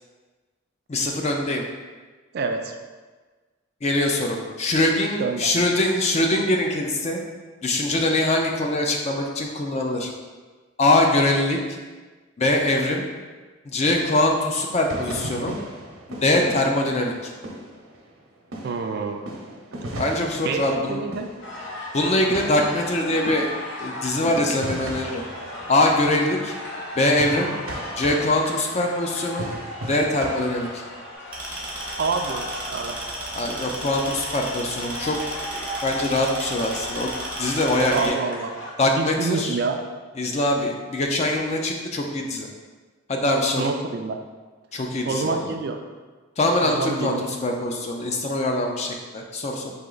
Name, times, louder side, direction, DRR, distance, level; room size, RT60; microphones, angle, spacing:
voice 1, 0.9-1.6 3.8-7.2 7.6-10.1 10.8-11.6 12.4-13.0 13.7-15.5 16.1-17.3 20.0-21.0 21.9-23.5 23.8-25.2 25.7-26.5 27.0-27.5 28.0-29.5 29.9-30.8 33.3-35.2 35.5-37.1 37.4-38.2 38.8-39.6 40.2-42.5 43.1-43.6 44.7-45.5 46.4-49.7, left 1 dB, 30° left, 1 dB, 0.4 m, -23 dB
voice 2, 2.3-2.7 5.2-5.5 18.6-19.2 20.4-21.3 27.3-27.6 32.0-33.0 37.9-38.5 39.0-39.8 43.5-44.2 45.0-45.8 46.6-47.2, right 4 dB, 50° right, 5 dB, 0.3 m, -27 dB
sound 1, 14.9-18.2 18.5-31.1, right 1 dB, 80° right, 0.8 m, -37 dB
sound 2, 21.4-38.7, left 1 dB, 55° left, 0.9 m, -36 dB
sound 3, 31.3-38.1, right 1 dB, 5° right, 0.7 m, -34 dB
4.3 x 2.9 x 3.9 m, 1.4 s
head